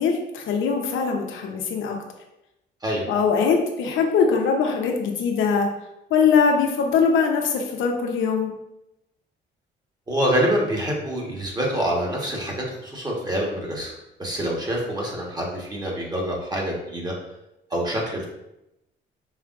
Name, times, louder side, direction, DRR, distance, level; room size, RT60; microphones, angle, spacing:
voice 1, 0.0-2.0 3.1-5.7 6.1-8.5, left 5 dB, 75° left, 2 dB, 0.8 m, -21 dB
voice 2, 10.1-13.9 14.2-17.1 17.7-18.3, equal, 20° right, -2 dB, 1.4 m, -26 dB
5.7 x 3.3 x 2.5 m, 0.88 s
cardioid pair, 90°, 20 cm